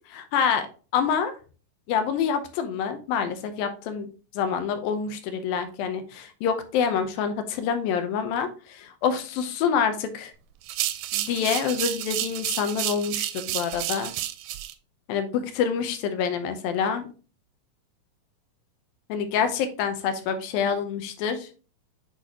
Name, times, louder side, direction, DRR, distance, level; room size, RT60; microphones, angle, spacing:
voice 1, 0.1-0.7 0.9-1.3 1.9-4.1 4.3-10.3 11.1-14.1 15.1-17.1 19.1-21.5, left 7 dB, 90° left, 8 dB, 2.6 m, -27 dB
sound 1, 10.6-14.7, right 13 dB, 80° right, 2.2 m, -30 dB
8.3 x 4.2 x 2.9 m, 0.36 s
omnidirectional pair, 4.0 m